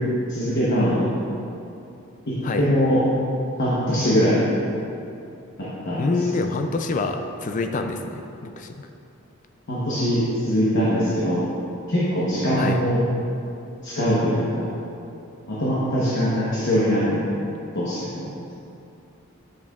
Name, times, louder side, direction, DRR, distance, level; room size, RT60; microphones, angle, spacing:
voice 1, 0.3-1.1 2.3-3.0 3.6-4.4 5.6-6.1 9.7-11.5 11.9-13.0 13.8-14.6 15.5-17.4 17.7-18.2, equal, 55° left, -9 dB, 1.0 m, -22 dB
voice 2, 6.0-8.7 12.6-12.8, left 3 dB, 35° left, 6 dB, 0.3 m, -26 dB
8.7 x 6.0 x 2.4 m, 2.7 s
head